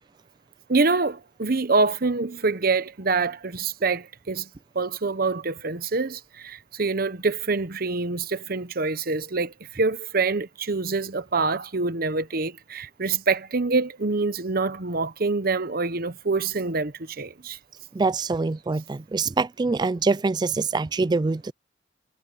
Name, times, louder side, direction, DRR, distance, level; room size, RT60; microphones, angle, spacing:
voice 1, 0.7-4.5 4.7-17.6, right 3 dB, 55° right, 1.0 m, -25 dB
voice 2, 17.9-21.5, right 3 dB, 25° right, 0.3 m, -24 dB
head